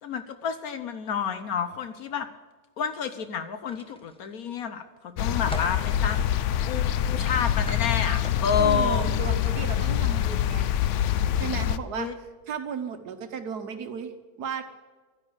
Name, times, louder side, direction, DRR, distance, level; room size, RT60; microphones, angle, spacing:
voice 1, 0.0-2.3 2.8-6.3 6.6-9.1 11.9-12.1, left 7 dB, 65° left, 9 dB, 1.2 m, -29 dB
sound 1, 3.7-4.5 5.0-5.8 7.2-8.6 9.1-9.4 10.2-10.4 10.8-11.0, right 1 dB, 5° left, 1.0 m, -40 dB
sound 2, 5.2-11.8, left 10 dB, 80° left, 0.6 m, -25 dB
voice 2, 8.6-10.7 11.3-12.1 12.5-14.1 14.4-14.6, right 7 dB, 70° right, 8 dB, 1.5 m, -34 dB
11.5 x 10.0 x 7.9 m, 1.3 s
omnidirectional pair, 1.8 m